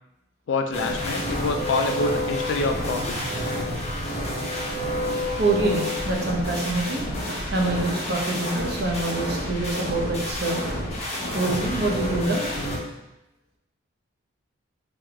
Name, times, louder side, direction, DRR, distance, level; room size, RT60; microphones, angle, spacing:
voice 1, 0.5-3.2, left 3 dB, 60° left, 6 dB, 0.3 m, -26 dB
sound 1, 0.7-12.8, equal, 30° left, 0.8 m, -29 dB
voice 2, 5.4-10.6 11.3-12.5, right 2 dB, 50° right, -2 dB, 0.6 m, -26 dB
3.3 x 2.6 x 3.4 m, 0.92 s
head